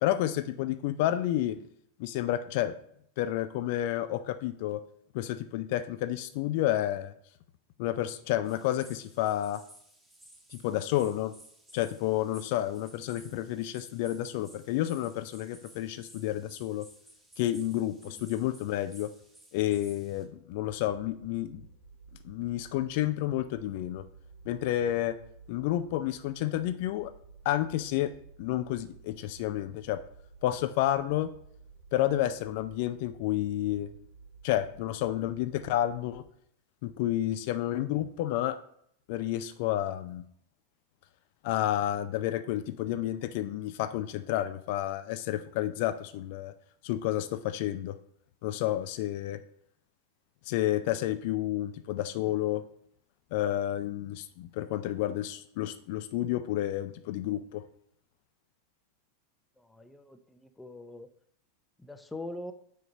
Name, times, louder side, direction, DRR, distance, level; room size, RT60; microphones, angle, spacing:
voice 1, 0.0-1.6 2.0-2.7 3.2-4.8 5.1-7.1 7.8-9.6 10.5-11.3 11.7-16.9 17.4-19.1 19.5-21.6 22.2-24.0 24.5-25.2 25.5-27.1 27.5-28.1 28.4-30.0 30.4-31.3 31.9-33.9 34.4-36.2 36.8-38.6 39.1-40.2 41.4-46.5 46.8-47.9 48.4-49.4 50.5-52.6 53.3-57.6, left 13 dB, 55° left, 12 dB, 0.4 m, -30 dB
sound 1, 8.4-20.2, right 1 dB, 10° right, 1.6 m, -56 dB
sound 2, 20.5-36.3, right 4 dB, 80° right, 2.9 m, -53 dB
voice 2, 59.6-61.1 61.8-62.5, left 2 dB, 10° left, 9 dB, 0.6 m, -43 dB
5.0 x 4.5 x 5.3 m, 0.68 s
hypercardioid pair, 90°, 0 cm